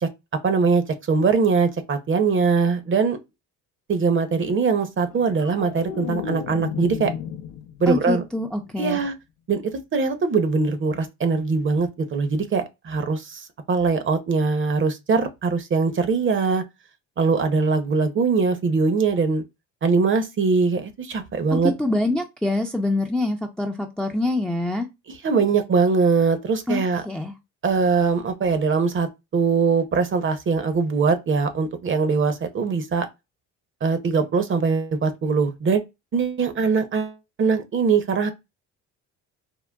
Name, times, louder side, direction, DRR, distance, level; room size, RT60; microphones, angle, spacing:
voice 1, 0.4-3.2 3.9-7.1 7.8-8.2 8.8-9.1 9.5-9.6 9.9-16.6 17.2-19.4 19.8-21.7 25.2-27.0 27.6-33.1 33.8-35.8 36.1-38.3, right 4 dB, 35° right, 0.7 m, -22 dB
sound 1, 5.0-8.2 8.5-8.9, left 8 dB, 75° left, 0.5 m, -33 dB
voice 2, 7.9-9.0 21.5-24.9 26.7-27.3, left 2 dB, 5° left, 0.4 m, -25 dB
3.7 x 2.2 x 2.2 m
supercardioid pair, 70°, 34 cm